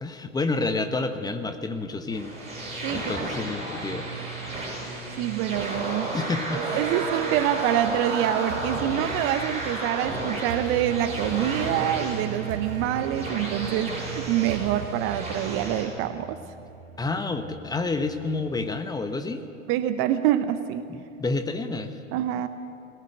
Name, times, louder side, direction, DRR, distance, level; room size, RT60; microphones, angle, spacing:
voice 1, 0.0-2.3 2.9-4.1 6.1-6.6 17.0-19.4 20.9-22.0, left 3 dB, 10° left, 7 dB, 1.1 m, -29 dB
sound 1, 2.1-15.9, right 1 dB, 15° right, 7.4 m, -33 dB
voice 2, 2.8-3.3 5.2-6.1 6.7-16.4 19.7-21.0 22.1-22.5, right 11 dB, 35° right, 12 dB, 0.8 m, -26 dB
sound 2, 3.9-18.7, right 7 dB, 50° right, 1.6 m, -36 dB
21.5 x 17.5 x 8.0 m, 2.6 s
figure-of-eight pair, 100°, 40 cm